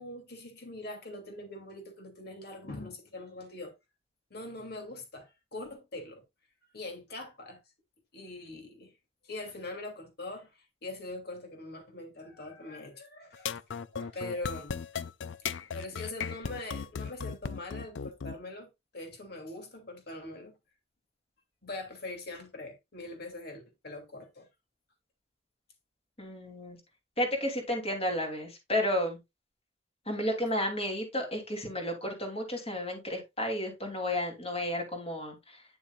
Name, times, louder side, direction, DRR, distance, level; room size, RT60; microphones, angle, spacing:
voice 1, 0.0-3.7 4.3-6.2 6.7-7.6 8.1-9.0 9.2-13.5 13.9-15.0 15.7-20.5 21.6-24.5, left 2 dB, 60° left, 2.8 m, -42 dB
sound 1, 13.3-18.4, left 6 dB, 85° left, 0.5 m, -36 dB
voice 2, 26.2-26.8 27.2-29.2 30.1-35.6, left 1 dB, 35° left, 3.1 m, -32 dB
9.9 x 6.9 x 2.4 m
head